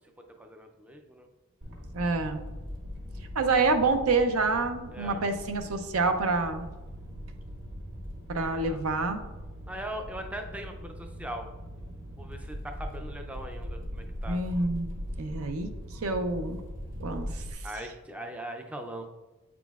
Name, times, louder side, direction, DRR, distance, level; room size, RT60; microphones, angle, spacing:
voice 1, 0.4-1.3 4.9-5.2 8.5-8.8 9.7-11.5 12.2-14.4 17.6-19.1, right 1 dB, 5° right, 4 dB, 0.4 m, -40 dB
sound 1, 1.6-17.5, equal, 50° right, 1.4 m, -40 dB
voice 2, 1.9-2.4 3.4-6.7 8.3-9.2 14.3-14.9 15.2-16.6 17.0-17.6, right 3 dB, 75° right, 8 dB, 0.6 m, -27 dB
8.0 x 6.0 x 2.4 m, 1.1 s
head